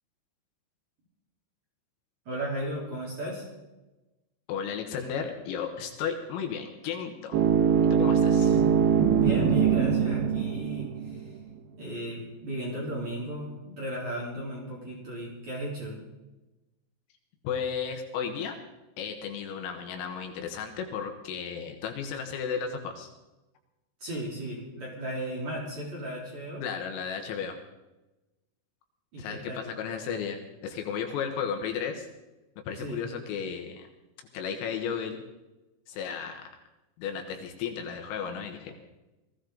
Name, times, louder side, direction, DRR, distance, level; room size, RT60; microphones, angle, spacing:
voice 1, 2.3-3.5 8.4-8.8 9.1-11.4 11.8-15.9 24.0-26.6 29.1-29.6 32.8-33.0, right 1 dB, 35° right, -5 dB, 4.4 m, -35 dB
voice 2, 4.5-7.4 7.9-8.6 17.4-18.6 19.0-23.1 26.6-27.6 29.2-32.1 32.7-33.9 34.3-35.2 35.9-36.4 37.0-38.7, left 7 dB, 80° left, 4 dB, 3.8 m, -34 dB
sound 1, 7.3-11.3, right 7 dB, 90° right, 2.1 m, -23 dB
20.5 x 16.0 x 3.9 m, 1.1 s
omnidirectional pair, 6.0 m